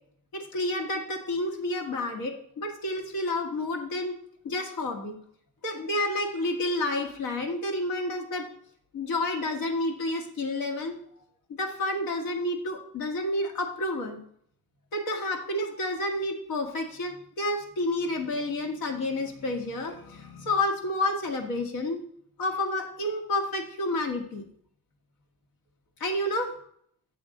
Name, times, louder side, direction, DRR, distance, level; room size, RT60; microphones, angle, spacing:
voice 1, 0.3-4.2 4.4-5.2 5.6-8.5 8.9-11.0 11.6-14.2 14.9-22.0 22.4-24.4 26.0-26.5, left 1 dB, 85° left, 1 dB, 1.5 m, -30 dB
7.8 x 3.8 x 6.4 m, 0.66 s
cardioid pair, 180°, 35 cm